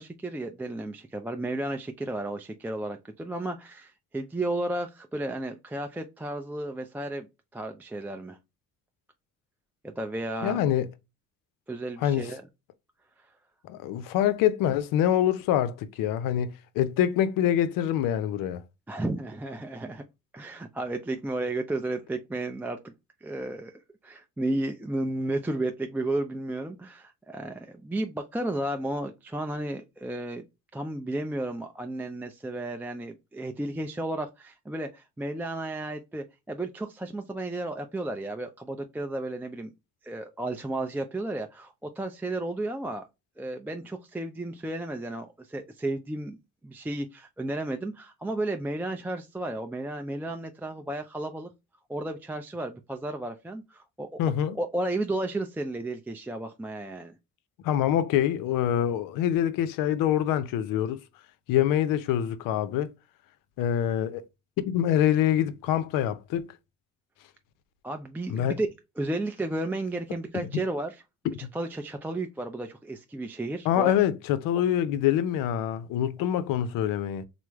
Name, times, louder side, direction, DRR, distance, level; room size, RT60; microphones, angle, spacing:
voice 1, 0.0-7.3 7.5-8.4 9.8-10.6 11.7-12.4 18.9-20.0 20.3-22.8 23.2-23.7 24.0-30.4 30.7-39.7 40.0-43.1 43.4-46.4 46.6-51.5 51.9-54.1 54.6-57.2 67.8-68.7 69.0-73.9, right 2 dB, 5° right, 0.3 m, -33 dB
voice 2, 10.4-10.9 12.0-12.3 13.7-18.6 54.2-54.6 57.6-61.0 61.5-62.9 63.6-64.2 64.6-66.5 68.3-68.6 71.4-71.5 73.6-77.2, left 10 dB, 75° left, 0.5 m, -25 dB
3.1 x 2.0 x 3.4 m
supercardioid pair, 75°, 33 cm